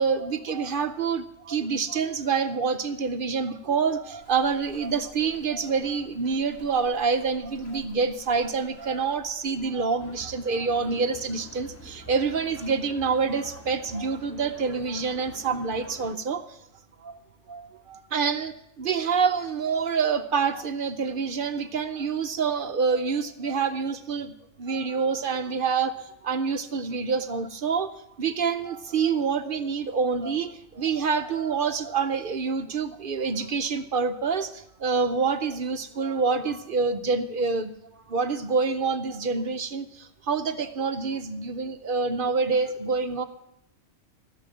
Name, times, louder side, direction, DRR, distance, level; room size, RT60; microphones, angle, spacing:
voice 1, 0.0-16.6 17.0-17.2 17.5-27.9 28.2-37.7 38.1-43.2, right 5 dB, 55° right, 9 dB, 0.7 m, -27 dB
Walk footsteps, 4.2-9.7, equal, 85° left, 2.5 m, -53 dB
sound 1, 10.0-16.2, right 1 dB, 15° left, 0.7 m, -46 dB
15.5 x 6.8 x 7.7 m, 0.79 s
omnidirectional pair, 1.4 m